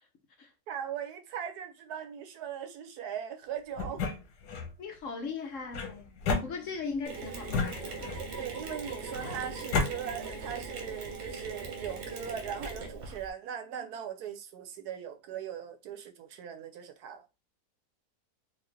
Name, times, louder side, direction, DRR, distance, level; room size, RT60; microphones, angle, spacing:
voice 1, 0.7-4.0 8.4-17.2, right 8 dB, 75° right, 1.2 m, -39 dB
sound 1, 3.8-4.7 5.7-7.0 7.5-8.4 9.1-9.9, left 4 dB, 80° left, 1.4 m, -32 dB
voice 2, 4.8-8.4, left 4 dB, 60° left, 1.0 m, -39 dB
Mechanisms, 7.1-13.3, right 4 dB, 50° right, 1.0 m, -40 dB
4.0 x 2.4 x 3.2 m
omnidirectional pair, 1.7 m